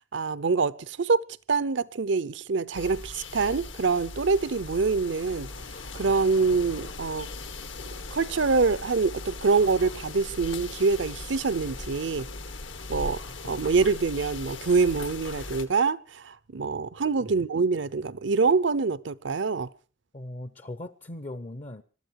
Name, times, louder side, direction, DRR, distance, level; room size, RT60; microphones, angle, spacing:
voice 1, 0.1-1.2 1.5-5.5 5.9-7.3 8.1-12.3 12.9-19.7, right 4 dB, 70° right, 0.7 m, -25 dB
sound 1, 2.7-15.7, left 3 dB, 80° left, 1.7 m, -39 dB
voice 2, 20.1-21.8, left 1 dB, 35° left, 0.7 m, -39 dB
22.0 x 13.0 x 4.7 m
head